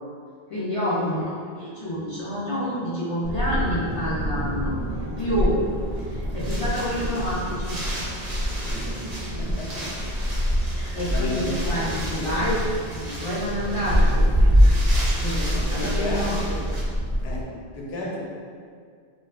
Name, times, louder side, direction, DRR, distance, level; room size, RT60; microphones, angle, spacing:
voice 1, 0.5-4.8 5.2-5.6 6.0-7.8 10.6-16.4 17.9-18.1, equal, 50° left, -10 dB, 0.4 m, -28 dB
Wind, 3.2-17.4, equal, 80° right, 0.8 m, -25 dB
Wind 2, 5.6-16.8, right 1 dB, 45° right, 0.7 m, -37 dB
voice 2, 9.4-9.9 10.7-12.3 15.5-16.6 17.2-17.5 17.7-18.2, left 1 dB, 90° left, -3 dB, 0.8 m, -33 dB
2.4 x 2.2 x 2.3 m, 2.1 s
omnidirectional pair, 1.0 m